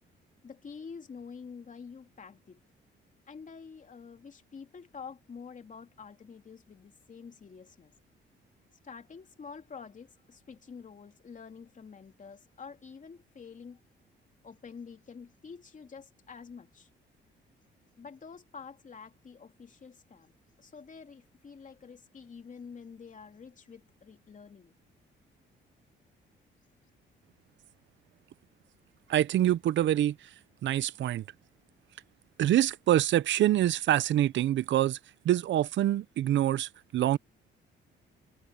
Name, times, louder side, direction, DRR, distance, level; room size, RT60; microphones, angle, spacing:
voice 1, 0.4-2.6 3.3-7.9 8.8-13.8 14.4-16.9 18.0-20.3 20.6-24.7, left 5 dB, 40° left, 2.9 m, -48 dB
voice 2, 29.1-30.2 30.6-31.2 32.4-35.0 35.2-37.2, right 12 dB, 70° right, 0.7 m, -25 dB
cardioid pair, 90°, 20 cm